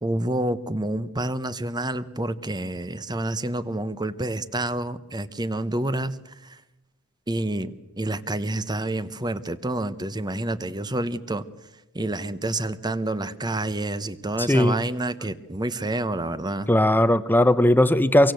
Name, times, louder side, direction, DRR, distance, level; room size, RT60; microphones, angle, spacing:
voice 1, 0.0-6.6 7.3-11.4 11.9-16.7, right 1 dB, 20° right, 13 dB, 1.0 m, -28 dB
voice 2, 14.5-14.8 16.7-18.3, left 1 dB, 10° left, 12 dB, 0.9 m, -18 dB
25.5 x 23.5 x 7.9 m, 0.97 s
head